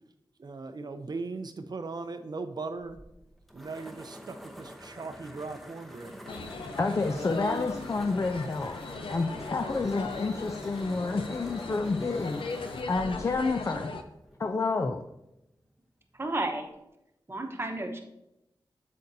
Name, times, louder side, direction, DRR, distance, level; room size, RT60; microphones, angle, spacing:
voice 1, 0.4-3.0 3.5-6.2, right 3 dB, 50° right, 9 dB, 0.5 m, -38 dB
sound 1, 2.8-14.6, equal, ahead, 0.8 m, -48 dB
sound 2, 6.3-14.0, left 3 dB, 85° left, 0.6 m, -39 dB
voice 2, 6.8-8.8 9.1-13.9 14.4-15.0, left 3 dB, 35° left, 6 dB, 0.4 m, -29 dB
voice 3, 16.1-16.7 17.3-18.0, right 2 dB, 30° right, 4 dB, 1.0 m, -32 dB
8.4 x 6.6 x 2.7 m, 0.88 s
wide cardioid pair, 95°, 9 cm